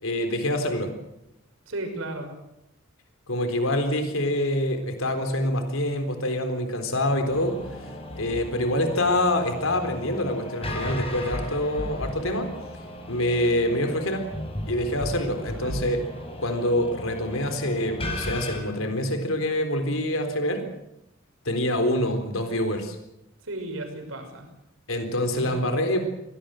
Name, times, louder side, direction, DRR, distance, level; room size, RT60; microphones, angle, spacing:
voice 1, 0.0-0.9 3.3-12.5 13.1-14.3 14.7-16.0 16.4-20.7 21.5-23.0 24.9-26.0, left 1 dB, 70° left, 7 dB, 4.0 m, -26 dB
voice 2, 1.7-2.3 15.6-15.7 23.4-24.5 25.4-25.6, right 2 dB, 70° right, 5 dB, 5.9 m, -34 dB
sound 1, 7.3-18.6, left 1 dB, 30° left, 5.1 m, -36 dB
24.0 x 18.5 x 7.8 m, 0.85 s
head